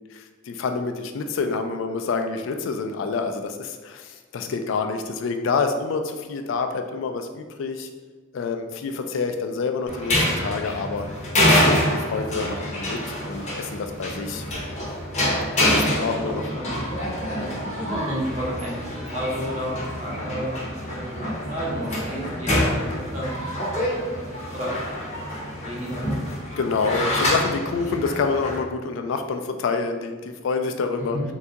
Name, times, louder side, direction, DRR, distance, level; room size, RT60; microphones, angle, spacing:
voice 1, 0.1-7.9 8.3-14.4 15.6-16.4 26.6-31.2, left 4 dB, 65° left, 6 dB, 0.3 m, -27 dB
sound 1, 9.9-28.6, left 1 dB, 30° left, 0.7 m, -26 dB
voice 2, 16.2-16.8 17.3-24.7 25.2-26.2 27.2-27.4 31.0-31.2, equal, 35° right, -6 dB, 0.8 m, -32 dB
3.5 x 2.3 x 2.8 m, 1.4 s
head